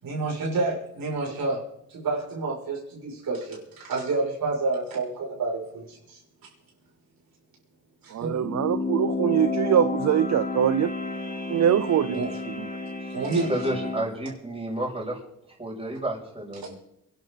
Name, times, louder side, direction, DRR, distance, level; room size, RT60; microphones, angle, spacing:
voice 1, 0.0-1.6 1.9-6.5 8.0-8.8 12.1-12.4 13.1-13.5 16.6-16.7, right 3 dB, 70° right, -2 dB, 6.6 m, -29 dB
voice 2, 8.1-10.9 11.5-12.3, right 10 dB, 50° right, 15 dB, 0.6 m, -23 dB
sound 1, 8.4-14.1, left 3 dB, 25° left, 3.3 m, -31 dB
voice 3, 13.5-15.2 15.6-16.7, right 1 dB, 15° right, -3 dB, 7.3 m, -30 dB
23.5 x 11.5 x 4.1 m, 0.79 s
cardioid pair, 65°, 36 cm